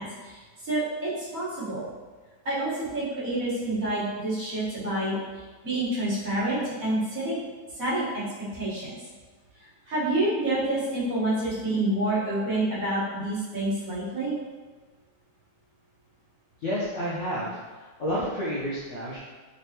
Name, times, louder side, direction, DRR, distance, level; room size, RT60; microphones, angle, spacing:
voice 1, 0.0-1.8 2.4-5.2 5.6-7.4 7.8-8.2 8.5-9.0 9.9-14.4, right 1 dB, 45° right, -10 dB, 1.6 m, -28 dB
voice 2, 16.6-17.6 18.0-19.2, equal, 80° left, -9 dB, 0.6 m, -29 dB
4.0 x 3.4 x 2.8 m, 1.3 s
omnidirectional pair, 2.3 m